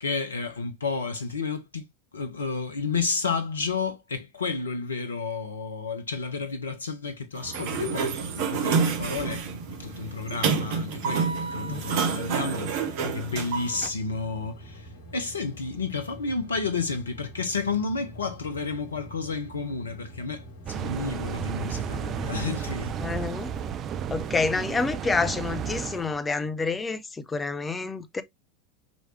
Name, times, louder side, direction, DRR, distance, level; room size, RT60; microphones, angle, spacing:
voice 1, 0.0-1.8 2.1-9.5 9.8-23.0, left 4 dB, 80° left, 0.7 m, -31 dB
sound 1, 7.4-24.7, equal, 65° left, 1.2 m, -45 dB
Sliding door, 7.4-13.9, right 5 dB, 55° right, 1.2 m, -28 dB
sound 2, 20.7-26.2, right 9 dB, 40° right, 0.4 m, -33 dB
voice 2, 23.0-23.5 24.1-28.2, left 4 dB, 15° left, 0.7 m, -28 dB
5.2 x 3.1 x 3.1 m
figure-of-eight pair, 80°, 0 cm